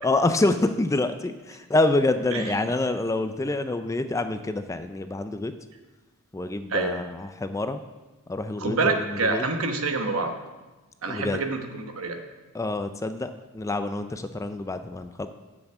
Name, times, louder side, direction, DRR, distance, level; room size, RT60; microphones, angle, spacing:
voice 1, 0.0-5.5 6.3-7.8 8.3-9.4 11.1-11.4 12.5-13.3 13.5-15.3, left 2 dB, 15° left, 9 dB, 0.3 m, -26 dB
voice 2, 8.6-10.3 11.0-12.2, right 3 dB, 65° right, 5 dB, 1.1 m, -27 dB
7.1 x 7.0 x 7.8 m, 1.2 s
head